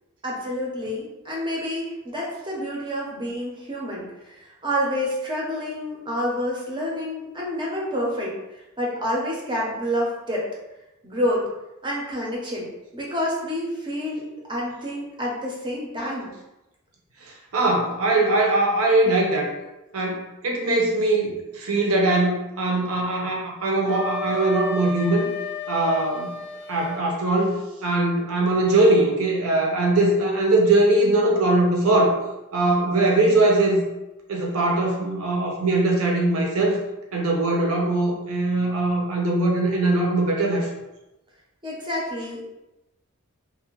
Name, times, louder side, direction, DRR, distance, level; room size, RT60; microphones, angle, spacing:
voice 1, 0.2-10.5 11.0-11.4 11.8-16.3 41.6-42.4, equal, 20° right, -4 dB, 0.6 m, -28 dB
voice 2, 17.5-19.5 19.9-25.3 25.7-26.3 26.7-27.5 27.8-32.2 32.5-33.9 34.3-36.8 37.1-40.7, right 2 dB, 70° right, -1 dB, 0.6 m, -21 dB
Wind instrument woodwind instrument, 23.9-27.0, left 2 dB, 55° left, 0.5 m, -33 dB
2.4 x 2.1 x 3.0 m, 0.96 s
head